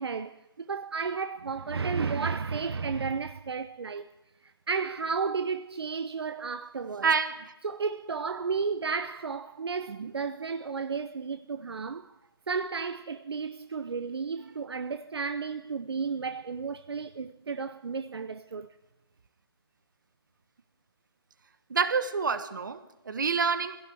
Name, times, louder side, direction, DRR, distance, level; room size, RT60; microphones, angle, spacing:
voice 1, 0.0-4.1 4.4-7.1 7.6-12.1 12.5-18.7, right 5 dB, 70° right, 0.7 m, -33 dB
voice 2, 7.0-7.5 9.9-10.1 21.7-23.8, right 5 dB, 45° right, 1.1 m, -28 dB
25.5 x 16.0 x 3.4 m
hypercardioid pair, 175°, 14 cm